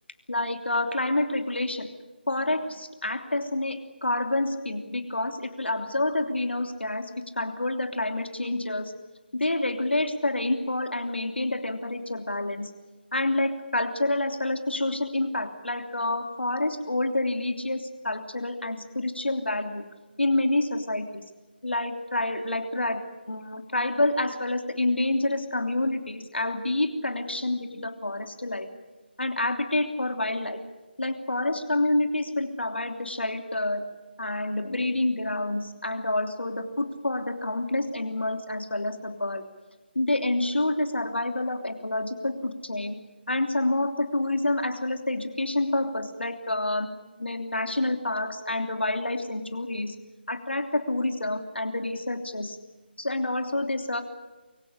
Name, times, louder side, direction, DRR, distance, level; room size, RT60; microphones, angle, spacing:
voice 1, 0.3-1.9 2.3-8.9 9.3-12.7 13.1-19.8 20.2-21.2 21.6-28.7 29.2-30.6 31.0-33.9 34.2-39.4 39.9-43.0 43.3-46.9 47.2-49.9 50.3-52.6 53.0-54.0, left 2 dB, 80° left, 6 dB, 3.2 m, -28 dB
24.0 x 17.0 x 9.9 m, 1.2 s
figure-of-eight pair, 160°, 6 cm